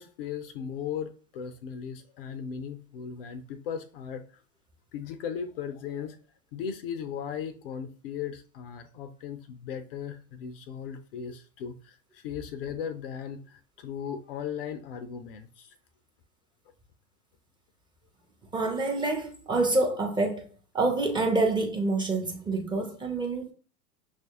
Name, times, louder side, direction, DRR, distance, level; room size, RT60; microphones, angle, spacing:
voice 1, 0.0-4.2 4.9-6.2 6.5-15.7, left 7 dB, 45° left, 0.4 m, -37 dB
voice 2, 18.5-20.5 20.7-23.5, right 2 dB, 10° right, 0.5 m, -27 dB
6.0 x 2.4 x 2.8 m
figure-of-eight pair, 85°, 43 cm